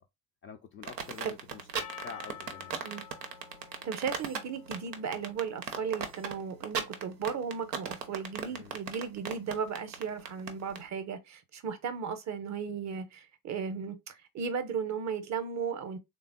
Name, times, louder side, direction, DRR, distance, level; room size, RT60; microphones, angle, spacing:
voice 1, 0.4-2.8 8.5-8.8, left 6 dB, 30° left, 0.3 m, -47 dB
sound 1, 0.8-10.8, right 7 dB, 90° right, 0.5 m, -37 dB
Percussion, 1.7-6.2, left 10 dB, 70° left, 0.6 m, -50 dB
voice 2, 3.8-16.0, right 6 dB, 35° right, 0.7 m, -35 dB
3.4 x 2.0 x 3.5 m
figure-of-eight pair, 50°, 49 cm